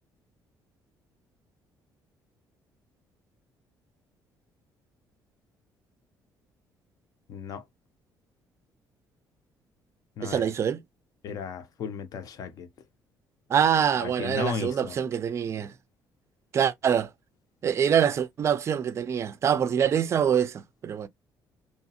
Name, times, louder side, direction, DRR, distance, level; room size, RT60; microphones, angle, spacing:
voice 1, 7.3-7.6 10.2-10.5 11.2-12.7 13.9-15.0, left 6 dB, 55° left, 0.6 m, -35 dB
voice 2, 10.2-10.8 13.5-15.7 16.5-17.1 17.6-21.1, right 8 dB, 40° right, 0.3 m, -25 dB
2.8 x 2.2 x 2.8 m
cardioid pair, 125°, 7 cm